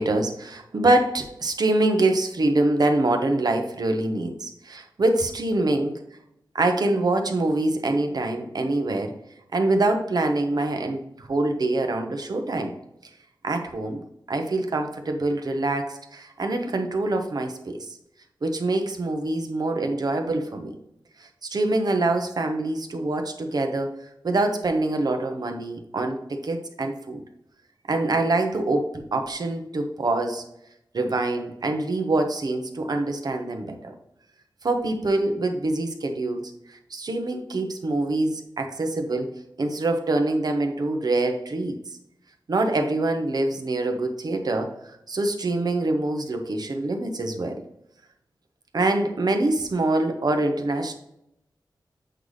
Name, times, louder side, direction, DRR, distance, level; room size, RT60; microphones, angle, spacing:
voice 1, 0.0-5.9 6.5-9.1 9.5-12.7 13.4-14.0 14.3-18.0 18.4-20.8 21.2-23.9 24.2-27.2 27.9-30.4 30.9-33.9 34.6-39.3 39.6-41.8 42.5-44.7 45.1-47.6 48.7-50.9, right 2 dB, 55° right, 5 dB, 0.9 m, -25 dB
7.8 x 4.0 x 3.2 m, 0.81 s
wide cardioid pair, 105°, 8 cm